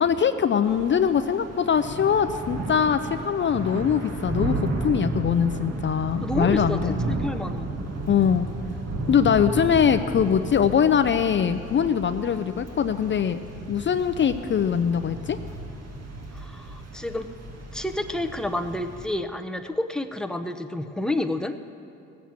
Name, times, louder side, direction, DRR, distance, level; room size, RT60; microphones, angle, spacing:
voice 1, 0.0-4.6 4.8-7.0 8.1-8.5 9.1-13.4 13.7-15.4, left 8 dB, 40° left, 10 dB, 0.5 m, -22 dB
Thunder / Rain, 0.6-19.0, right 2 dB, 55° right, 1.8 m, -33 dB
voice 2, 6.2-7.7 16.3-17.3 17.7-21.6, left 1 dB, ahead, 7 dB, 0.7 m, -30 dB
17.0 x 7.2 x 7.4 m, 2.7 s
cardioid pair, 90°, 30 cm